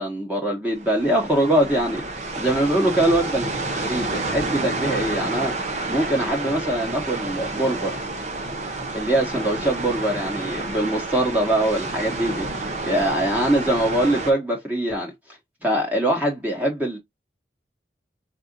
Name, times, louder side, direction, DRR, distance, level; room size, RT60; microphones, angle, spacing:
voice 1, 0.0-3.5 3.8-5.5 5.9-8.0 8.9-15.1 15.6-17.0, right 1 dB, 10° right, 1.1 m, -23 dB
sound 1, 0.7-14.3, right 2 dB, 40° right, 1.0 m, -29 dB
4.3 x 4.1 x 2.5 m
head